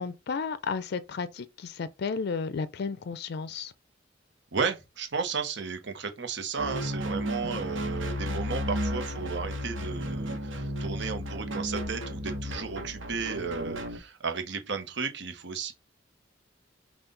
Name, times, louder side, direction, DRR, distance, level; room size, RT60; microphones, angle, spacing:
voice 1, 0.0-3.7 7.4-7.6, left 5 dB, 60° left, 0.4 m, -33 dB
voice 2, 4.5-15.7, right 5 dB, 65° right, 1.0 m, -34 dB
sound 1, 6.6-14.0, equal, 90° right, 1.0 m, -33 dB
5.6 x 2.4 x 3.8 m
head